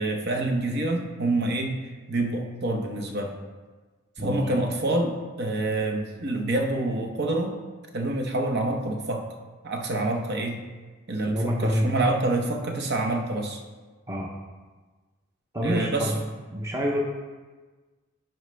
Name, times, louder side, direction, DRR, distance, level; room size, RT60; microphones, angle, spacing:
voice 1, 0.0-1.7 2.1-3.4 4.2-7.5 7.9-9.2 9.6-10.6 11.1-13.6 15.6-16.1, right 2 dB, 55° right, 3 dB, 0.9 m, -27 dB
voice 2, 11.3-11.9 14.1-14.3 15.5-16.2 16.5-17.0, equal, 15° right, -1 dB, 0.6 m, -27 dB
10.0 x 4.5 x 3.3 m, 1.3 s
head